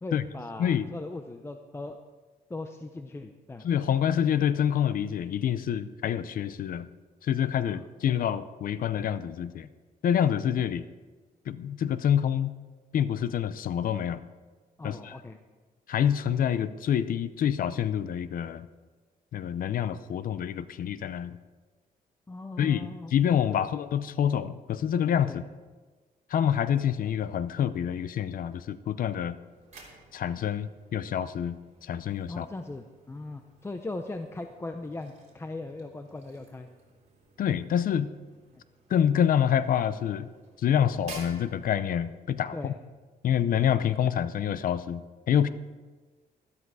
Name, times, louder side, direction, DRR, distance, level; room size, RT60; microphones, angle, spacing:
voice 1, 0.0-2.0 2.5-3.7 7.6-7.9 14.8-15.4 22.3-23.1 23.5-23.6 25.3-25.4 32.3-36.7 38.5-38.6 40.9-41.0 42.5-42.7, left 2 dB, 15° left, 6 dB, 0.6 m, -39 dB
voice 2, 3.6-6.9 7.2-9.7 10.0-10.8 11.5-12.5 12.9-14.2 14.8-15.2 15.9-18.7 19.3-21.4 22.6-25.4 26.3-29.4 30.1-31.6 31.8-32.5 37.4-38.1 38.9-40.3 40.6-42.7 43.2-45.5, left 9 dB, 65° left, 14 dB, 0.6 m, -27 dB
sound 1, 29.3-42.4, right 4 dB, 50° right, 3.3 m, -53 dB
12.5 x 12.0 x 4.8 m, 1.3 s
cardioid pair, 130°, 15 cm